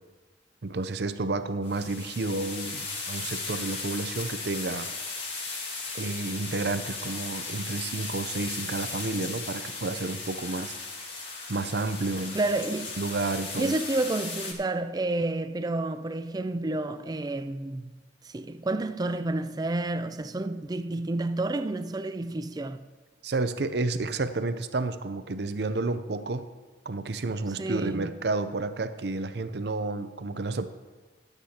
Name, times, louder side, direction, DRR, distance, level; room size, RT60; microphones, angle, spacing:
voice 1, 0.6-4.9 5.9-10.7 11.5-12.4 13.0-13.7 23.2-26.5 26.9-30.7, right 3 dB, 65° right, 0.6 m, -31 dB
sound 1, 1.6-14.5, left 3 dB, 75° left, 2.0 m, -36 dB
voice 2, 12.3-12.9 13.5-17.9 18.2-22.8 27.6-28.1, right 2 dB, 20° right, 0.4 m, -30 dB
23.0 x 8.2 x 2.9 m
head